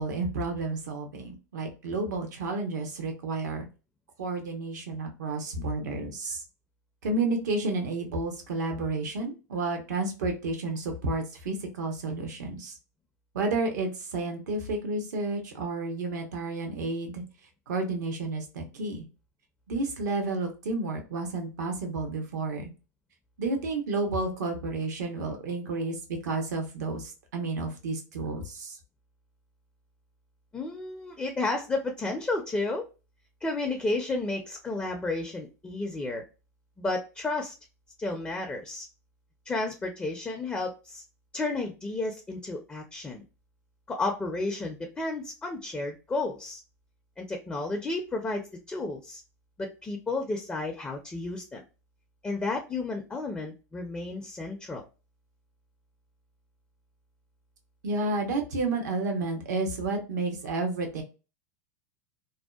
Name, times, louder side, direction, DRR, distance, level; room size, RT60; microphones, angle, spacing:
voice 1, 0.0-3.7 4.2-6.4 7.0-12.7 13.3-17.2 17.7-19.0 19.7-22.7 23.4-28.8 57.8-61.0, right 3 dB, 80° right, 4 dB, 0.8 m, -31 dB
voice 2, 30.5-32.9 33.4-36.2 36.8-37.5 38.0-38.9 39.5-41.0 41.3-43.2 43.9-46.6 47.2-49.2 49.6-51.6 52.2-54.8, left 2 dB, 15° left, 3 dB, 0.4 m, -32 dB
2.6 x 2.1 x 2.3 m, 0.31 s
hypercardioid pair, 105°, 9 cm